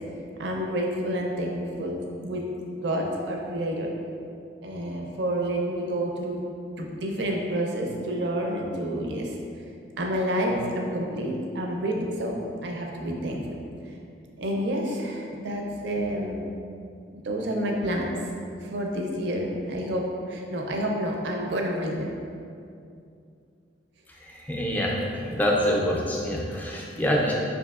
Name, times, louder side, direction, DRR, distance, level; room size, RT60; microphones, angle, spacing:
voice 1, 0.4-2.4 2.8-3.9 4.6-6.4 6.8-9.4 10.0-13.6 14.4-16.4 17.1-18.2 18.6-22.2, equal, 60° right, 1 dB, 0.5 m, -29 dB
voice 2, 24.2-25.0 25.2-27.3, equal, 10° left, -3 dB, 0.4 m, -26 dB
4.9 x 2.6 x 2.3 m, 2.5 s
head